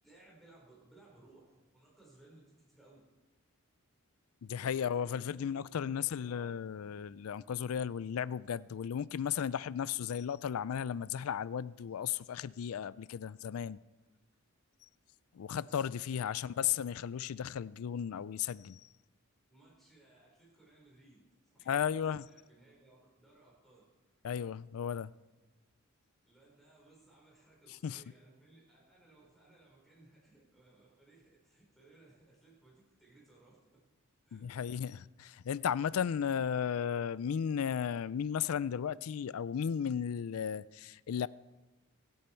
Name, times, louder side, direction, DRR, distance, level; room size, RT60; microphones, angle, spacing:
voice 1, 0.0-3.0 4.8-5.5 5.9-6.6 16.0-16.6 19.5-23.8 26.2-33.7 34.2-34.7, right 2 dB, ahead, 4.3 m, -62 dB
voice 2, 4.4-13.8 15.3-18.8 21.7-22.2 24.2-25.1 27.8-28.0 34.3-41.3, left 8 dB, 80° left, 0.4 m, -35 dB
26.0 x 8.7 x 4.5 m
head